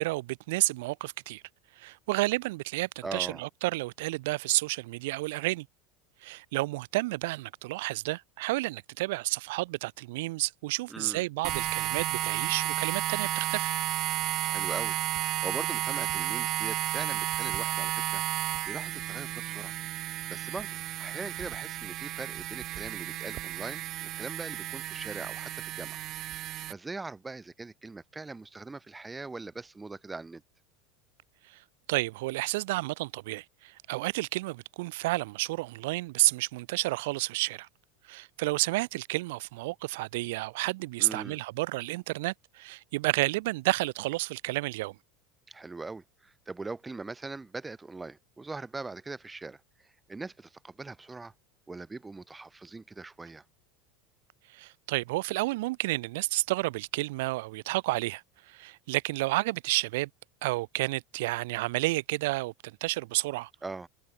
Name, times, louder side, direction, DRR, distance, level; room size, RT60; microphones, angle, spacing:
voice 1, 0.0-1.4 1.8-5.7 6.2-13.7 31.5-31.6 31.9-37.7 38.0-45.0 54.5-60.1 60.4-63.5, right 21 dB, 70° right, 2.0 m, -31 dB
voice 2, 3.0-3.4 10.9-11.2 14.4-18.2 18.7-19.7 20.3-20.7 21.0-26.0 26.7-30.4 41.0-41.4 45.5-51.3 51.7-53.4 63.6-63.9, right 3 dB, 15° right, 4.3 m, -41 dB
sound 1, 11.4-26.7, right 15 dB, 50° right, 1.9 m, -32 dB
hypercardioid pair, 85°, 0 cm